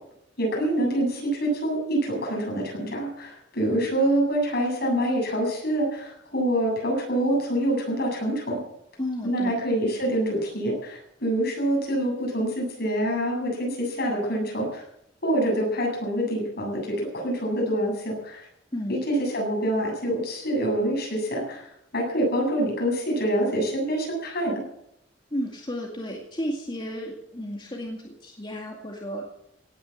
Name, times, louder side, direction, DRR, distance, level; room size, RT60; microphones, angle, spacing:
voice 1, 0.4-8.6 9.2-14.8 15.2-18.5 18.9-21.7 21.9-24.6, right 1 dB, 55° left, -1 dB, 7.9 m, -26 dB
voice 2, 9.0-9.5 18.7-19.0 25.3-29.2, equal, 25° left, -1 dB, 2.2 m, -33 dB
17.5 x 10.0 x 7.4 m, 0.79 s
head